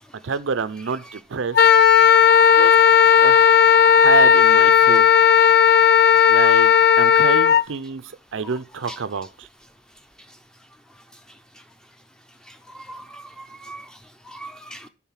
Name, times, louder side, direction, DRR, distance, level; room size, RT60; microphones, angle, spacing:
voice 1, 0.2-1.6 2.6-2.7 3.2-3.6 4.0-5.1 6.3-6.7 7.0-9.5, right 5 dB, 75° right, 0.5 m, -27 dB
Wind instrument woodwind instrument, 1.5-7.6, left 8 dB, 50° left, 0.4 m, -14 dB
voice 2, 12.9-13.8 14.3-14.8, equal, 5° left, 0.6 m, -39 dB
10.5 x 4.1 x 5.6 m
head